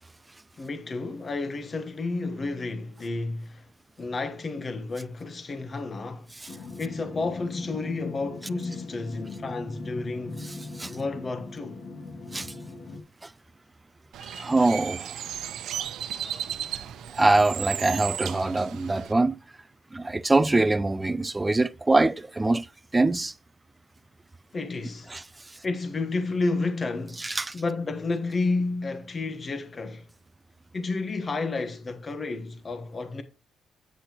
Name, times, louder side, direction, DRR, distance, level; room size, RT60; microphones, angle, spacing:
voice 1, 0.6-3.7 4.0-10.4 10.9-11.8 24.5-25.1 25.6-27.3 27.5-30.1 30.7-33.2, left 3 dB, 35° left, 1.1 m, -31 dB
sound 1, 6.5-13.0, left 3 dB, 65° left, 2.4 m, -40 dB
Bird, 14.1-19.1, right 10 dB, 75° right, 0.8 m, -35 dB
voice 2, 14.2-15.2 16.2-16.4 17.1-19.4 19.9-23.3 25.1-25.6 27.2-27.6, right 2 dB, 15° right, 0.4 m, -24 dB
9.6 x 8.3 x 3.0 m
cardioid pair, 90°, 0 cm